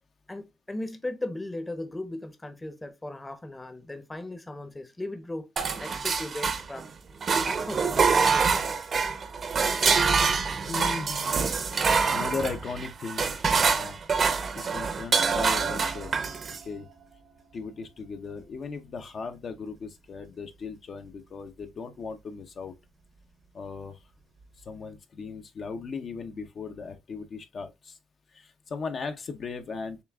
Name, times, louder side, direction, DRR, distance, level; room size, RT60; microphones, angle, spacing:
voice 1, 0.3-5.5 5.7-6.9 7.4-8.9, left 1 dB, 15° left, 0.8 m, -37 dB
sound 1, 5.6-6.9 7.2-16.6, right 5 dB, 50° right, 0.7 m, -25 dB
voice 2, 10.7-11.4 12.0-14.0 14.5-16.9 17.5-22.8 23.5-24.0 24.6-28.0 28.3-30.0, left 4 dB, 50° left, 0.7 m, -37 dB
6.8 x 2.3 x 2.3 m
cardioid pair, 90°, 0 cm